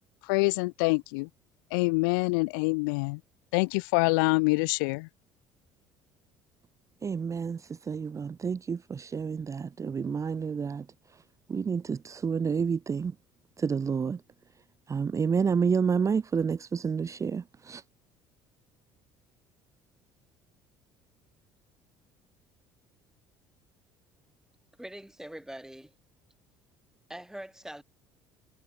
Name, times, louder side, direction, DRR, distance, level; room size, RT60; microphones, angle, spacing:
voice 1, 0.2-1.3 1.7-3.2 3.5-5.1, left 29 dB, 75° left, 0.6 m, -26 dB
voice 2, 7.0-10.9 11.5-13.1 13.6-14.2 14.9-17.8, right 6 dB, 30° right, 0.6 m, -29 dB
voice 3, 24.8-25.9 27.1-27.8, right 1 dB, 5° right, 7.1 m, -43 dB
hypercardioid pair, 65°, 11 cm